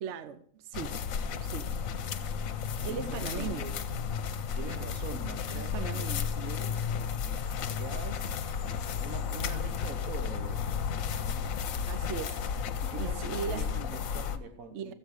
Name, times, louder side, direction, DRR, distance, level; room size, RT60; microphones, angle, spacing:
voice 1, 0.0-1.0 1.4-1.7 2.8-3.6 5.5-6.3 11.9-12.4 13.0-13.7 14.7-14.9, right 8 dB, 65° right, 0.9 m, -38 dB
sound 1, 0.7-14.4, left 7 dB, 80° left, 1.1 m, -33 dB
voice 2, 2.8-3.8 4.5-6.1 6.4-6.8 7.6-8.4 8.7-11.0 12.8-14.9, right 5 dB, 80° right, 1.6 m, -43 dB
14.0 x 7.9 x 4.8 m
omnidirectional pair, 1.4 m